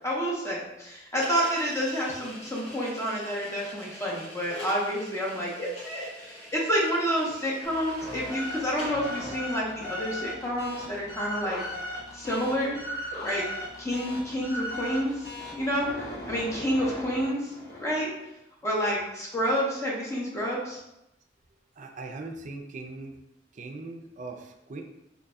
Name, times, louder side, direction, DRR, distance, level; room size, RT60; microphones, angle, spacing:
voice 1, 0.0-11.6 12.1-12.8 13.2-13.4 13.8-15.9 16.3-17.5 17.8-18.1 18.6-20.8, equal, 15° left, -5 dB, 0.6 m, -29 dB
sound 1, 1.2-9.3, equal, 90° left, 1.5 m, -44 dB
sound 2, 7.6-18.2, equal, 65° left, 1.2 m, -38 dB
voice 2, 21.8-23.2 23.5-24.8, right 3 dB, 45° right, 4 dB, 0.4 m, -40 dB
3.9 x 2.6 x 2.2 m, 0.88 s
head